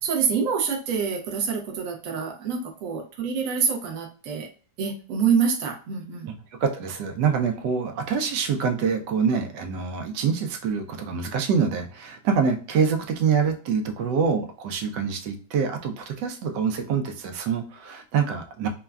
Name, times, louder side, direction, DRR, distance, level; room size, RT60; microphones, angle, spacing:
voice 1, 0.0-4.5 4.8-6.3, right 6 dB, 60° right, 2 dB, 1.0 m, -26 dB
voice 2, 6.5-18.7, right 6 dB, 80° right, 4 dB, 1.2 m, -25 dB
3.5 x 2.1 x 2.2 m, 0.38 s
omnidirectional pair, 1.8 m